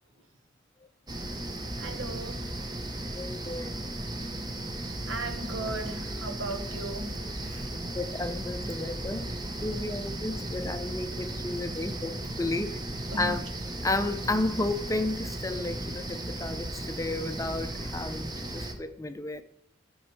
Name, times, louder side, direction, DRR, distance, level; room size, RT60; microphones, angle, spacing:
sound 1, 1.1-18.7, right 1 dB, 20° right, 0.8 m, -36 dB
voice 1, 1.8-2.4 5.1-7.1 7.4-7.7 13.1-13.4, right 2 dB, 90° right, 1.2 m, -36 dB
voice 2, 3.1-3.7 7.9-9.3 9.6-12.8 13.1-13.4 13.8-19.4, left 2 dB, 15° left, 0.5 m, -32 dB
13.0 x 5.3 x 4.6 m
head